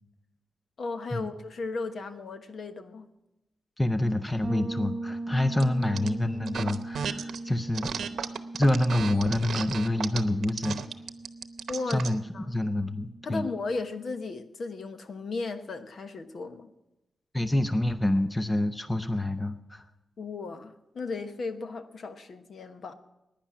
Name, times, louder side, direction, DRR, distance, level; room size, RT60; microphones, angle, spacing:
voice 1, 0.8-3.1 11.7-12.0 12.3-12.5 13.2-16.7 20.2-22.9, left 3 dB, 55° left, 9 dB, 1.0 m, -35 dB
voice 2, 3.8-7.9 8.5-10.8 11.9-13.5 17.3-19.9, left 1 dB, 15° left, 10 dB, 0.6 m, -27 dB
Bass guitar, 4.4-14.1, right 2 dB, 20° right, 2.4 m, -40 dB
sound 1, 5.6-6.1 6.5-7.4 7.7-12.2, right 7 dB, 85° right, 0.8 m, -34 dB
16.0 x 10.0 x 6.1 m, 0.96 s
wide cardioid pair, 125°, 0 cm